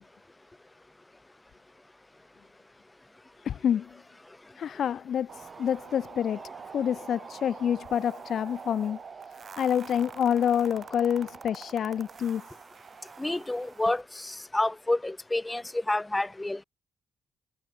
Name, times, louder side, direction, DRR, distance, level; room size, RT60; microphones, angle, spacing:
voice 1, 3.4-3.9 4.6-6.4 6.7-9.0 9.6-12.4, left 9 dB, 60° left, 0.7 m, -27 dB
sound 1, 5.3-14.0, right 6 dB, 45° right, 3.3 m, -45 dB
voice 2, 13.2-16.6, left 2 dB, 15° left, 3.1 m, -29 dB
cardioid pair, 90°, 0 cm